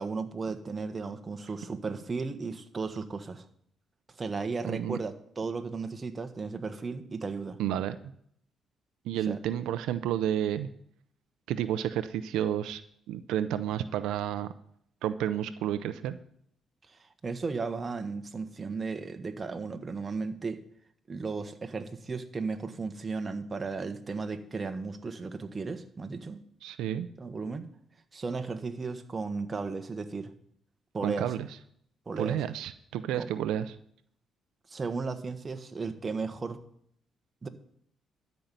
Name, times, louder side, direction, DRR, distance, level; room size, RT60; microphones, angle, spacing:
voice 1, 0.0-3.5 4.2-7.6 9.3-9.4 16.9-20.6 21.1-26.4 27.2-27.7 28.1-30.3 30.9-31.3 32.1-32.4 33.1-33.2 34.7-36.6 37.4-37.5, right 4 dB, 30° right, 7 dB, 1.4 m, -35 dB
voice 2, 4.7-5.0 7.6-8.1 9.0-10.7 11.5-12.8 13.1-14.5 15.0-16.2 26.6-27.1 31.0-31.5 32.2-33.8, right 10 dB, 90° right, 11 dB, 0.7 m, -31 dB
13.0 x 5.6 x 9.2 m, 0.67 s
cardioid pair, 90°, 0 cm